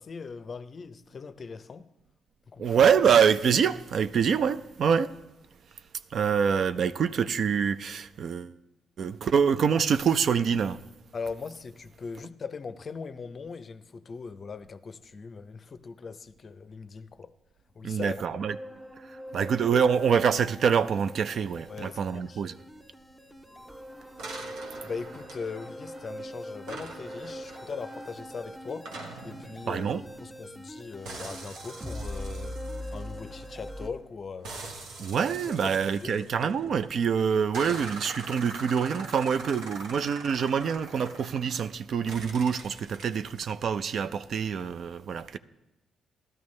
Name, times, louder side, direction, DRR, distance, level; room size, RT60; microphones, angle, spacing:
voice 1, 0.0-1.9 2.5-2.8 11.1-17.3 17.7-18.2 21.7-22.4 24.8-28.9 29.2-32.6 32.9-34.6 35.6-36.8 37.7-37.8, left 5 dB, 40° left, 0.5 m, -40 dB
voice 2, 2.6-5.1 6.1-8.5 9.0-10.8 17.8-18.6 19.1-22.5 29.7-30.0 35.0-45.4, right 7 dB, 60° right, 0.4 m, -25 dB
sound 1, 18.5-33.9, equal, 5° right, 0.7 m, -42 dB
sound 2, 24.2-26.2 26.7-30.7 31.1-33.8 34.4-36.9 37.5-41.7 42.1-43.5, right 3 dB, 85° right, 1.2 m, -43 dB
14.0 x 12.5 x 3.2 m
cardioid pair, 90°, 0 cm